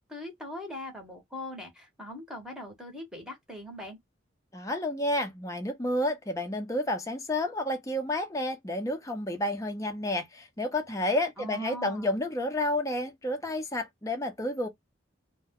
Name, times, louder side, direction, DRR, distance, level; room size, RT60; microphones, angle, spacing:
voice 1, 0.1-4.0 11.4-12.2, left 1 dB, 5° right, 0.9 m, -41 dB
voice 2, 4.5-14.7, left 1 dB, 15° left, 0.6 m, -30 dB
2.2 x 2.1 x 3.5 m
head